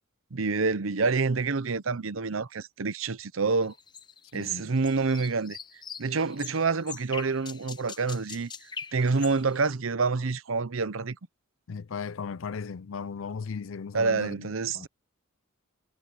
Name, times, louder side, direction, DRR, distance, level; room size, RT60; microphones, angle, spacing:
voice 1, 0.3-3.7 4.3-5.6 6.0-8.5 8.9-11.2 13.9-14.9, right 4 dB, 75° right, 0.8 m, -27 dB
sound 1, 3.6-9.7, left 6 dB, 20° left, 0.7 m, -43 dB
voice 2, 4.3-4.6 11.7-14.9, left 5 dB, 70° left, 0.5 m, -37 dB
head